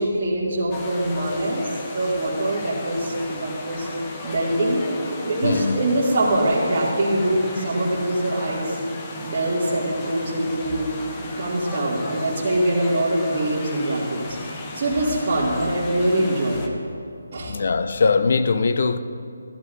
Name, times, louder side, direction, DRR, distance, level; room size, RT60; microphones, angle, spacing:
voice 1, 0.0-1.7 1.9-3.9 4.2-8.8 9.2-10.9 11.2-14.3 14.7-16.7 17.3-17.6, right 1 dB, 40° right, 1.8 m, -23 dB
sound 1, 0.7-16.7, left 2 dB, 20° left, 0.8 m, -35 dB
voice 2, 5.4-5.8 17.5-19.0, left 4 dB, 55° left, 0.5 m, -21 dB
14.0 x 12.0 x 2.5 m
hypercardioid pair, 165°, 0 cm